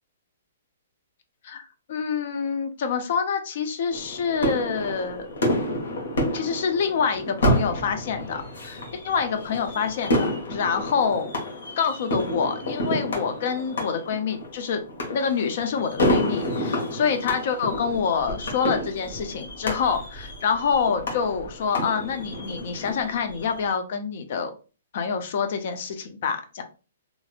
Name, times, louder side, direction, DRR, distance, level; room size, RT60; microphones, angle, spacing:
voice 1, 1.4-5.3 5.9-6.0 6.3-11.3 11.8-14.8 15.1-24.5 24.9-26.6, left 6 dB, 55° left, 8 dB, 0.6 m, -26 dB
sound 1, 3.9-23.7, equal, 75° left, 1.3 m, -29 dB
3.1 x 2.6 x 2.4 m, 0.34 s
hypercardioid pair, 155°, 0 cm